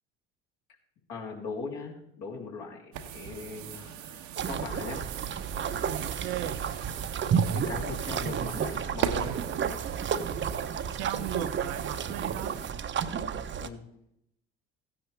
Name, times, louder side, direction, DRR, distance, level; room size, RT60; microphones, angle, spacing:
voice 1, 1.1-5.1 7.5-9.3 13.6-13.9, left 5 dB, 65° left, 3.1 m, -40 dB
sound 1, 2.9-12.7, right 9 dB, 70° right, 1.0 m, -39 dB
sound 2, 4.4-13.7, right 7 dB, 40° right, 0.8 m, -31 dB
voice 2, 5.9-6.6 10.9-12.6, right 12 dB, 90° right, 0.7 m, -37 dB
15.5 x 9.8 x 3.4 m
hypercardioid pair, 65°, 31 cm